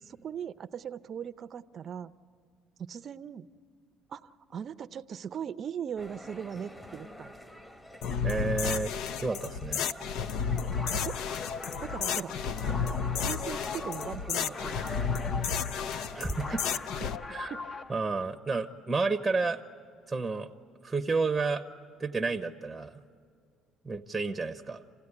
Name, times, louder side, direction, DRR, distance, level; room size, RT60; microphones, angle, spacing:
voice 1, 0.1-2.1 2.8-3.5 4.1-7.3 10.9-11.2 11.8-12.3 13.2-14.8 16.5-16.6 17.5-17.6, right 8 dB, 45° right, 12 dB, 0.5 m, -39 dB
sound 1, 6.0-16.8, equal, 15° left, 1.4 m, -47 dB
sound 2, 8.0-17.2, left 7 dB, 75° left, 0.6 m, -32 dB
voice 2, 8.2-8.9 9.2-9.8 16.1-16.6 17.3-17.5 17.9-19.6 20.1-20.5 20.8-21.7 22.0-23.0 23.8-24.8, right 4 dB, 15° right, 8 dB, 0.7 m, -30 dB
sound 3, 10.7-18.1, left 4 dB, 35° left, 0.7 m, -41 dB
27.5 x 16.0 x 9.8 m, 2.2 s
cardioid pair, 105°, 0 cm